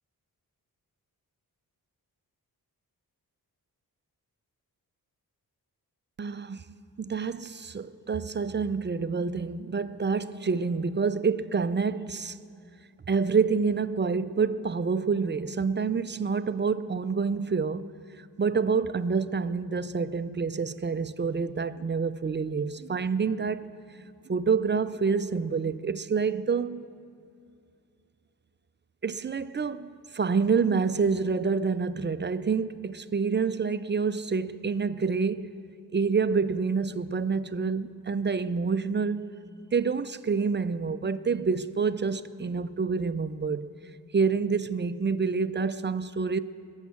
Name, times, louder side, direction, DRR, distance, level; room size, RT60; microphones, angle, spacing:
voice 1, 6.2-6.6 7.0-12.4 13.1-17.9 18.2-23.7 24.3-26.9 29.0-35.5 35.9-39.3 39.7-43.7 44.1-46.4, right 5 dB, 30° right, 0.4 m, -27 dB
21.5 x 7.3 x 8.3 m
wide cardioid pair, 95°, 38 cm